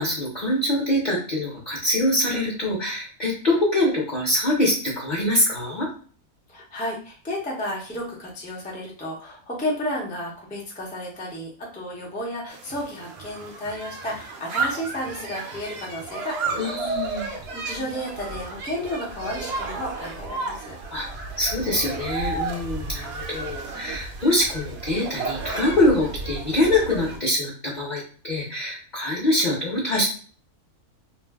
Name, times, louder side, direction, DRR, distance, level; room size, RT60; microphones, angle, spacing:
voice 1, 0.0-5.9 16.6-17.3 20.9-30.0, left 1 dB, 40° left, -5 dB, 0.7 m, -24 dB
voice 2, 6.5-16.7 17.0-20.7, left 1 dB, 10° left, -3 dB, 0.3 m, -32 dB
sound 1, 12.5-27.2, right 3 dB, 60° right, 0.7 m, -33 dB
2.5 x 2.2 x 3.4 m, 0.42 s
omnidirectional pair, 1.6 m